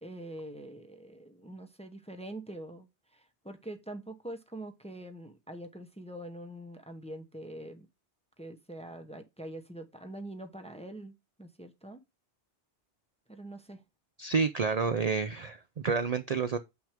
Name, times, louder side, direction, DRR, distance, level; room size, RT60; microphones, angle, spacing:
voice 1, 0.0-7.9 8.4-12.0 13.3-13.8, right 1 dB, 5° left, 0.8 m, -44 dB
voice 2, 14.2-16.6, right 5 dB, 45° right, 0.5 m, -29 dB
7.2 x 6.0 x 3.5 m
omnidirectional pair, 1.1 m